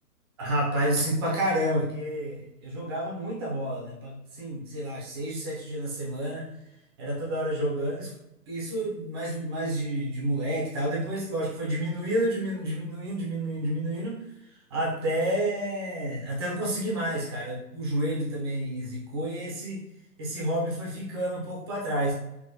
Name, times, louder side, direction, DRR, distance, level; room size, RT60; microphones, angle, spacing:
voice 1, 0.4-6.5 7.0-8.1 8.5-19.9 20.2-22.1, right 1 dB, 15° right, -4 dB, 0.6 m, -30 dB
3.7 x 2.8 x 2.7 m, 0.89 s
figure-of-eight pair, 125°, 48 cm